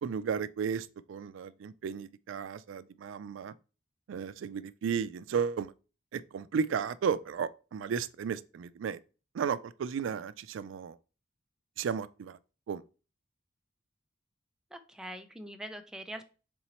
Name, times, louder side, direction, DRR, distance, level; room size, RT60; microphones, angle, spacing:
voice 1, 0.0-3.5 4.1-5.7 6.1-9.0 9.3-11.0 11.8-12.4 12.7-12.8, right 6 dB, 80° right, 0.3 m, -34 dB
voice 2, 14.7-16.3, right 1 dB, 5° right, 0.4 m, -43 dB
4.3 x 3.8 x 2.9 m
head